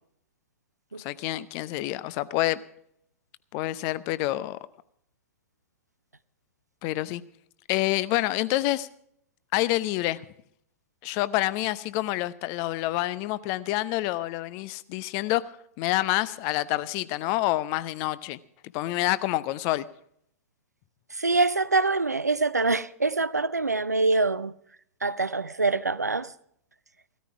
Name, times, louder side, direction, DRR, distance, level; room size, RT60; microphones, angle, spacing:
voice 1, 1.0-2.6 3.5-4.6 6.8-7.2 7.7-8.9 9.5-10.2 11.0-18.4 18.7-19.8, left 17 dB, 35° left, 0.7 m, -27 dB
voice 2, 21.1-24.5 25.0-26.3, right 3 dB, 85° right, 0.6 m, -25 dB
16.5 x 13.5 x 4.8 m
figure-of-eight pair, 105°, 9 cm